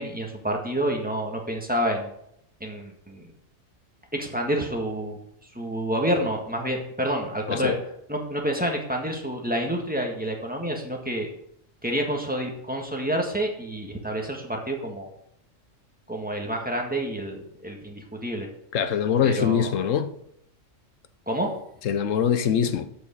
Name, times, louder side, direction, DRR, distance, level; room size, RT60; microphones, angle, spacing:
voice 1, 0.0-2.1 2.6-3.3 4.1-5.2 5.5-7.7 8.1-11.3 11.8-15.1 16.1-18.5 19.2-19.7 21.3-21.5, right 1 dB, 5° right, 1.6 m, -28 dB
voice 2, 7.5-7.8 18.7-20.1 21.8-22.9, left 8 dB, 75° left, 1.1 m, -23 dB
8.0 x 6.3 x 6.2 m
omnidirectional pair, 1.3 m